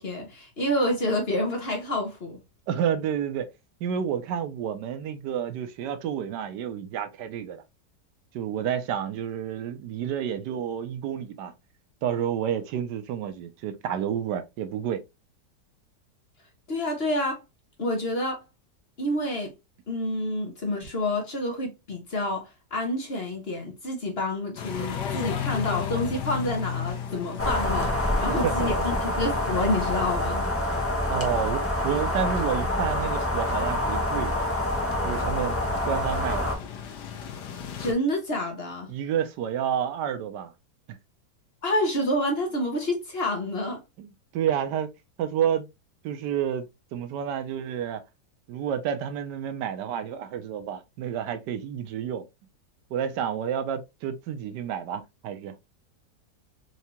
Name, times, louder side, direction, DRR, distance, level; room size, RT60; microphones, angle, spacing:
voice 1, 0.0-2.4 16.7-17.4 17.8-18.4 19.0-19.5 19.9-30.4 37.8-38.9 41.6-43.8, left 1 dB, 40° left, 1.1 m, -28 dB
voice 2, 2.7-3.5 3.8-7.6 8.3-11.5 12.0-15.0 28.4-28.9 31.1-34.4 35.0-35.6 35.9-36.5 38.9-40.5 40.9-41.0 44.0-44.9 45.2-45.7 46.0-48.0 48.5-52.2 52.9-55.5, right 9 dB, 85° right, 1.3 m, -30 dB
sound 1, 24.6-37.9, left 8 dB, 80° left, 1.4 m, -36 dB
sound 2, 27.4-36.6, left 1 dB, 15° left, 0.6 m, -27 dB
4.6 x 2.8 x 2.7 m
omnidirectional pair, 1.8 m